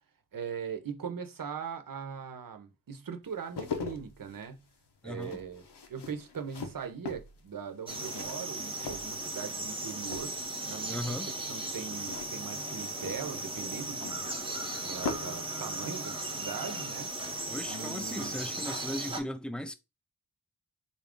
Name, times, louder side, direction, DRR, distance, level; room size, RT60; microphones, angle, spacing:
voice 1, 0.3-4.6 5.0-5.6 5.9-10.4 10.7-14.2 14.8-17.4 17.7-18.5, right 6 dB, 55° right, 0.7 m, -40 dB
sound 1, 3.3-9.7 10.0-10.7 12.0-15.5 15.7-15.9, left 5 dB, 80° left, 0.8 m, -42 dB
voice 2, 5.0-5.4 10.9-11.3 17.5-19.7, equal, 5° left, 0.3 m, -37 dB
sound 2, 7.9-19.2, right 2 dB, 15° right, 0.7 m, -37 dB
4.0 x 2.5 x 3.6 m
wide cardioid pair, 80°, 40 cm